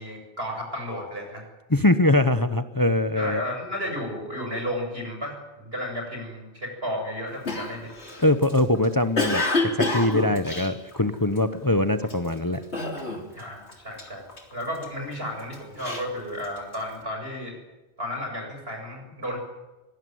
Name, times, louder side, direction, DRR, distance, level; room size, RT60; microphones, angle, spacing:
voice 1, 0.0-1.4 3.2-7.9 13.4-14.3 14.5-17.6 18.0-19.4, equal, 65° right, 3 dB, 7.7 m, -33 dB
voice 2, 1.7-3.4 8.2-12.6, left 1 dB, 20° left, 11 dB, 1.0 m, -22 dB
Cough, 7.5-11.5 12.0-12.3 12.7-13.4 13.7-14.9 15.4-16.9, left 2 dB, 80° left, 3.8 m, -28 dB
24.0 x 19.0 x 9.4 m, 1.1 s
omnidirectional pair, 1.1 m